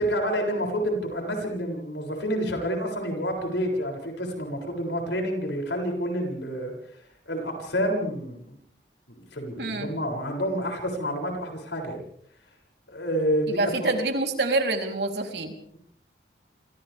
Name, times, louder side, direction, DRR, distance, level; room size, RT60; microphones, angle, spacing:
voice 1, 0.0-6.7 7.3-8.6 9.1-12.0 12.9-13.9, equal, 85° left, 2 dB, 7.3 m, -28 dB
voice 2, 9.6-9.9 13.5-15.5, right 2 dB, 70° right, 3 dB, 3.7 m, -26 dB
28.0 x 27.0 x 3.6 m, 0.69 s
head